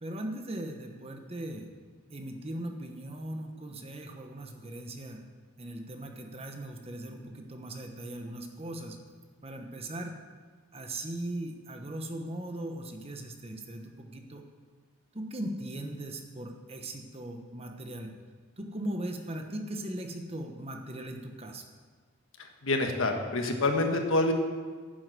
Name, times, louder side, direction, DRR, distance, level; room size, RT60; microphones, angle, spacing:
voice 1, 0.0-1.7 2.1-5.2 5.6-9.0 9.4-10.2 10.7-14.4 15.1-18.1 18.6-21.6, right 1 dB, 30° right, 4 dB, 1.0 m, -39 dB
voice 2, 22.4-24.3, left 2 dB, 75° left, 4 dB, 1.5 m, -27 dB
10.5 x 7.8 x 7.7 m, 1.5 s
head